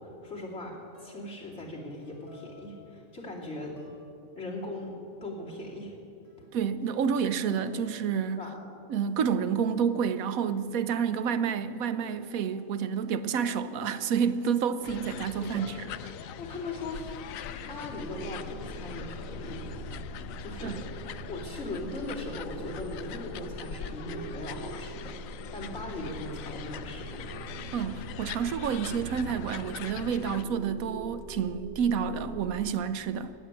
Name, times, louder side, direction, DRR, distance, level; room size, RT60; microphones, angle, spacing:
voice 1, 0.0-3.8 4.4-4.9 5.2-5.9 8.4-8.6 14.8-14.9 15.4-15.6 16.4-17.1 17.7-19.6 20.4-20.8 21.3-27.2, left 2 dB, 55° left, 3.4 m, -39 dB
sound 1, 0.9-1.4 2.0-3.0 3.8-4.1 4.5-5.0 6.2-8.8 9.1-10.5 11.6-14.7 15.0-15.9, left 1 dB, 25° left, 4.5 m, -55 dB
voice 2, 6.5-8.4 8.9-15.8 20.6-20.8 27.7-33.3, right 7 dB, 85° right, 1.1 m, -29 dB
sound 2, 14.8-30.4, left 9 dB, 75° left, 1.0 m, -42 dB
sound 3, 17.9-32.7, right 4 dB, 55° right, 1.2 m, -43 dB
17.0 x 8.4 x 9.7 m
omnidirectional pair, 1.4 m